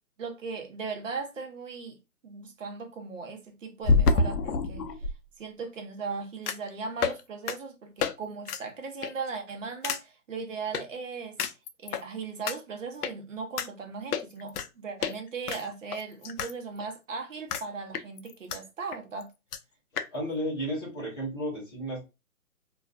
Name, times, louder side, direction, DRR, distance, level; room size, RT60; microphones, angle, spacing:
voice 1, 0.2-2.0 2.2-4.9 5.4-11.4 11.8-19.3, right 4 dB, 55° right, 0.8 m, -38 dB
sound 1, 1.4-1.5 3.8-5.1 6.5-6.7 7.0-7.2 7.5-7.6 8.0-8.1 8.4-8.6 9.0-9.3 9.8-10.0 10.7-10.8 11.4-12.0 12.5-12.6 13.0-13.1 13.6-13.7 14.1-14.7 15.0-15.1 15.5-16.5 16.8-16.9 17.5-17.6 17.9-18.6 18.9-19.0 19.2-19.3 19.5-19.6 20.0-20.1, left 4 dB, 85° left, 0.5 m, -27 dB
voice 2, 20.1-22.1, equal, 15° left, 0.7 m, -33 dB
2.4 x 2.3 x 2.2 m
hypercardioid pair, 175°, 45 cm